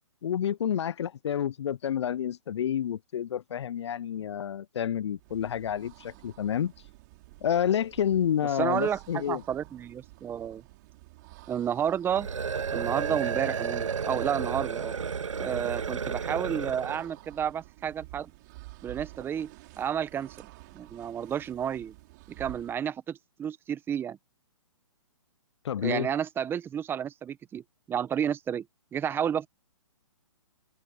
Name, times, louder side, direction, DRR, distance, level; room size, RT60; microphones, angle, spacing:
voice 1, 0.2-6.7 7.4-9.4 25.6-26.1, left 9 dB, 60° left, 0.5 m, -29 dB
sound 1, 5.1-22.9, right 22 dB, 35° right, 6.4 m, -51 dB
voice 2, 8.6-10.6 11.5-12.3 12.7-14.9 15.4-18.3 18.8-19.5 19.8-20.5 20.7-21.9 22.3-24.2 25.8-27.6 27.9-28.7 28.9-29.5, right 9 dB, 15° right, 1.2 m, -31 dB
sound 2, 12.1-17.1, right 6 dB, 75° right, 2.0 m, -32 dB
open air
hypercardioid pair, 140°, 16 cm